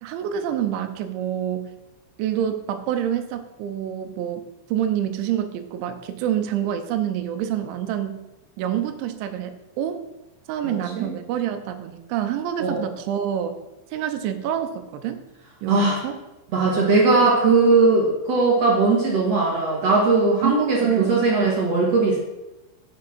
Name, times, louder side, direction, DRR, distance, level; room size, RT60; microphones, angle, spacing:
voice 1, 0.0-1.8 2.2-8.2 8.6-10.0 10.5-13.6 13.9-15.2 15.6-16.2 17.2-17.3 20.4-20.5 20.8-21.3, right 10 dB, 80° right, 8 dB, 2.9 m, -27 dB
voice 2, 10.6-11.1 12.6-12.8 15.7-16.0 16.5-22.2, right 3 dB, 55° right, -4 dB, 1.8 m, -19 dB
7.0 x 6.1 x 6.0 m, 0.99 s
omnidirectional pair, 5.5 m